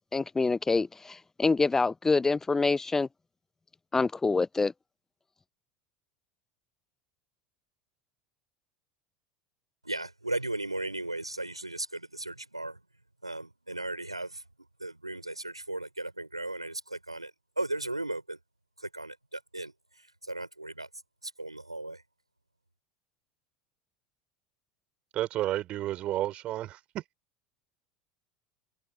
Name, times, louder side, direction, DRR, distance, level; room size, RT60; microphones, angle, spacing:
voice 1, 0.1-3.1 3.9-4.7, left 3 dB, 15° left, 0.6 m, -26 dB
voice 2, 9.8-12.8 13.2-14.4 14.8-17.3 17.6-18.4 18.8-20.9 21.2-22.0, right 2 dB, 90° right, 6.2 m, -36 dB
voice 3, 25.1-27.0, right 14 dB, 45° right, 5.8 m, -31 dB
figure-of-eight pair, 75°, 3 cm